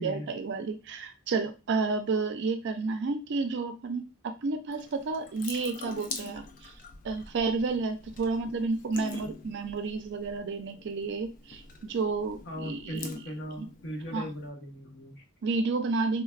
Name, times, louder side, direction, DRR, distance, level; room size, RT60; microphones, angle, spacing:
voice 1, 0.0-4.1 4.4-6.4 7.0-13.1 13.6-13.7 14.1-14.3 15.4-16.2, right 4 dB, 55° right, 7 dB, 0.4 m, -31 dB
Water tap faucet / Sink (filling or washing) / Drip, 4.7-14.5, left 4 dB, 40° left, 0.4 m, -45 dB
voice 2, 12.4-15.2, equal, 60° left, 1 dB, 0.8 m, -38 dB
3.2 x 2.2 x 2.3 m, 0.29 s
head